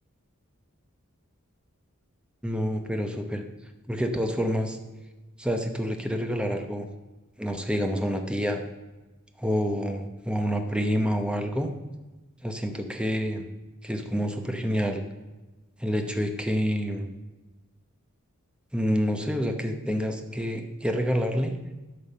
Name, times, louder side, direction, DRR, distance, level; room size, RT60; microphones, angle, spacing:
voice 1, 2.4-3.4 3.9-4.8 5.4-6.9 7.4-8.6 9.4-11.7 12.4-13.5 13.8-15.0 15.8-17.1 18.7-21.6, equal, 5° right, 5 dB, 0.8 m, -28 dB
11.0 x 5.6 x 6.7 m, 1.2 s
head